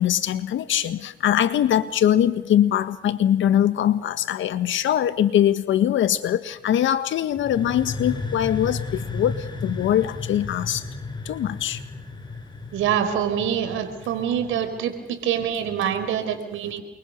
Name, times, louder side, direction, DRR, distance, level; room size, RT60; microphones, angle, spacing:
voice 1, 0.0-10.8 11.2-11.8, left 10 dB, 75° left, 12 dB, 1.7 m, -22 dB
sound 1, 7.3-15.0, left 3 dB, 20° left, 4.6 m, -34 dB
voice 2, 12.7-16.8, right 9 dB, 85° right, 8 dB, 4.5 m, -25 dB
28.5 x 23.5 x 6.7 m, 0.86 s
cardioid pair, 90°, 20 cm